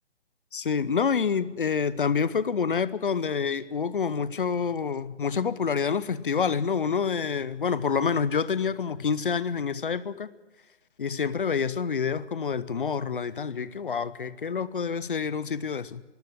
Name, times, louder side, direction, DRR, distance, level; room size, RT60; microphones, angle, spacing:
voice 1, 0.5-10.3 11.0-16.0, left 6 dB, 45° left, 0.8 m, -27 dB
25.0 x 13.0 x 8.7 m
figure-of-eight pair, 145°, 36 cm